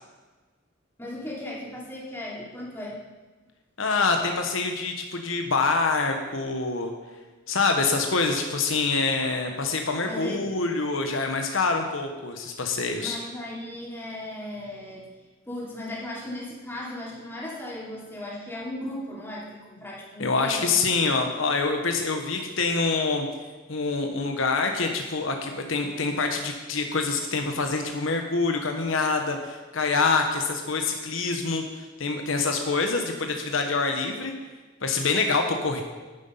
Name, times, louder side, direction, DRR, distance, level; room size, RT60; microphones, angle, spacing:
voice 1, 1.0-3.0 10.1-10.5 13.0-15.1 15.4-20.6, left 1 dB, 10° left, -6 dB, 3.3 m, -36 dB
voice 2, 3.8-6.9 7.5-13.2 20.2-23.3 23.7-34.3 34.8-35.8, left 4 dB, 75° left, 4 dB, 1.1 m, -26 dB
10.5 x 9.8 x 5.5 m, 1.3 s
head